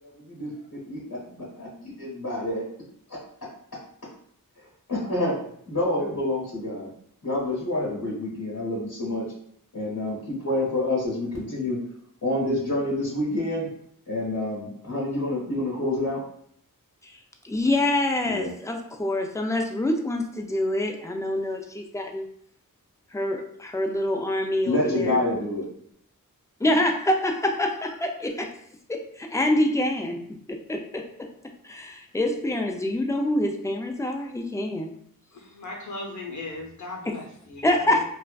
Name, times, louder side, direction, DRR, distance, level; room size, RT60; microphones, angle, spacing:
voice 1, 0.0-2.6 4.9-5.3 5.7-6.9 7.2-9.3 9.7-11.8 12.2-13.7 14.1-16.2 18.2-18.5 24.6-25.7, left 1 dB, 90° left, -8 dB, 0.8 m, -28 dB
voice 2, 17.4-22.3 23.1-25.2 26.6-28.5 28.9-30.2 30.5-31.3 31.7-34.9 37.1-37.2 37.6-38.0, left 1 dB, 10° left, 3 dB, 0.3 m, -26 dB
voice 3, 35.3-38.0, left 2 dB, 55° left, 0 dB, 0.7 m, -38 dB
2.4 x 2.2 x 2.2 m, 0.66 s
wide cardioid pair, 45°, 34 cm